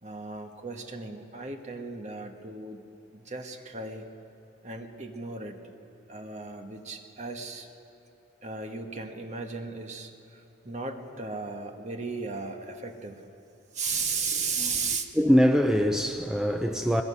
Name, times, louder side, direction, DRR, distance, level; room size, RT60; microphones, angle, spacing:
voice 1, 0.0-2.8 3.1-4.1 4.6-5.6 6.1-7.7 8.4-13.2 13.7-15.1, right 4 dB, 40° right, 1.4 m, -35 dB
voice 2, 14.6-17.0, equal, 5° right, 0.5 m, -24 dB
22.0 x 21.5 x 5.7 m
head